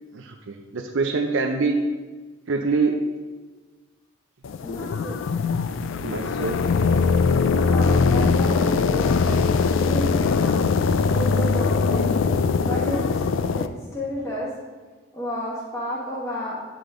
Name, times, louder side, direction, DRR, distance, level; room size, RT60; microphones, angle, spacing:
voice 1, 0.1-1.8 2.5-3.0 6.0-6.6, right 4 dB, 75° right, 3 dB, 0.5 m, -25 dB
sound 1, 4.4-13.7, left 4 dB, 75° left, 0.4 m, -21 dB
voice 2, 4.6-5.2 7.7-10.6 11.1-12.3 12.6-13.0 13.6-13.7 13.9-14.5 15.1-16.7, equal, 15° left, -7 dB, 1.8 m, -31 dB
9.8 x 5.0 x 3.8 m, 1.3 s
head